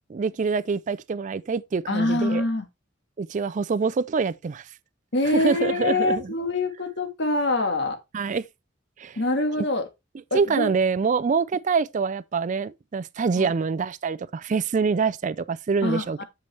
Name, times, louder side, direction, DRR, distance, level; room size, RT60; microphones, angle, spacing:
voice 1, 0.1-2.4 3.2-4.7 5.3-6.3 8.1-8.4 9.0-9.2 10.3-16.2, right 5 dB, 40° right, 0.4 m, -25 dB
voice 2, 1.9-2.7 5.1-8.0 9.2-9.9 10.3-10.7 13.4-13.5 15.8-16.2, left 2 dB, 65° left, 1.7 m, -25 dB
8.2 x 6.9 x 3.2 m
head